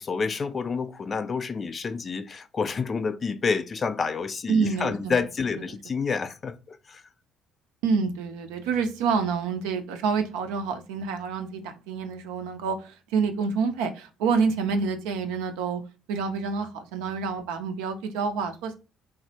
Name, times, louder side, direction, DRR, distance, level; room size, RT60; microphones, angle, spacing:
voice 1, 0.0-7.0, left 5 dB, 40° left, 0.4 m, -29 dB
voice 2, 4.5-5.2 7.8-15.8 16.1-18.7, right 5 dB, 80° right, 0.5 m, -27 dB
3.5 x 2.1 x 2.7 m
hypercardioid pair, 55°, 0 cm